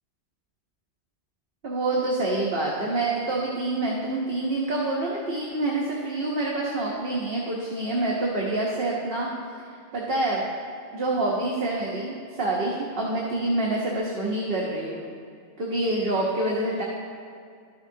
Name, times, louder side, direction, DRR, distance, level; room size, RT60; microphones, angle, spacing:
voice 1, 1.6-9.3 9.9-10.5 10.9-15.0 15.6-16.8, right 2 dB, 60° right, -4 dB, 1.1 m, -27 dB
12.5 x 6.5 x 2.7 m, 2.3 s
omnidirectional pair, 1.2 m